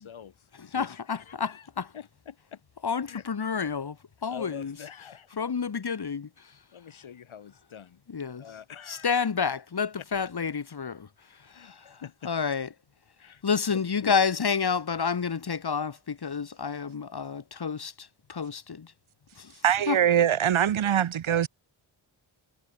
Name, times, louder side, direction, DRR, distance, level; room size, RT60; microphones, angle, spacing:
voice 1, 0.0-2.6 3.1-3.3 4.3-5.3 6.7-8.0 8.4-9.2 10.0-10.1 11.5-12.3 13.2-13.4 13.7-14.2, left 8 dB, 85° left, 3.9 m, -45 dB
voice 2, 0.6-1.9 2.8-4.0 4.2-4.8 5.4-6.5 8.1-8.4 8.9-11.1 11.4-12.7 13.4-18.9 19.4-19.5 19.9-20.0, left 6 dB, 55° left, 3.2 m, -30 dB
voice 3, 19.6-21.5, right 9 dB, 90° right, 1.9 m, -23 dB
cardioid pair, 80°, 47 cm